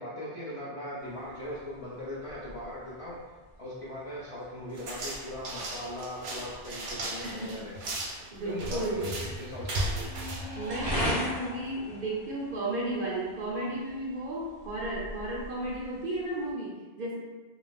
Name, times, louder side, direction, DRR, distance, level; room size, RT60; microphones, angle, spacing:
voice 1, 0.0-3.2 3.6-7.9 8.4-10.1, left 1 dB, 45° left, -9 dB, 0.4 m, -39 dB
sound 1, 1.0-16.5, equal, 5° left, 0.8 m, -40 dB
sound 2, 4.7-11.3, right 1 dB, 80° right, 0.9 m, -36 dB
voice 2, 7.2-7.6 8.3-9.1 10.5-17.2, right 1 dB, 60° right, -4 dB, 0.7 m, -34 dB
2.4 x 2.0 x 3.3 m, 1.2 s
omnidirectional pair, 1.2 m